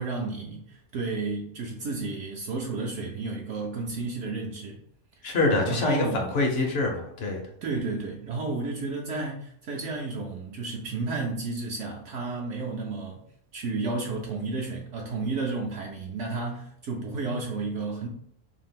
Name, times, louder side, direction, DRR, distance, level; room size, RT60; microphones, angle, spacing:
voice 1, 0.0-4.8 5.2-5.3 5.7-6.3 7.6-13.2 13.5-18.1, right 3 dB, 65° right, -1 dB, 0.8 m, -32 dB
voice 2, 5.2-7.4, left 2 dB, 55° left, 1 dB, 0.8 m, -25 dB
2.7 x 2.4 x 3.5 m, 0.68 s
omnidirectional pair, 1.5 m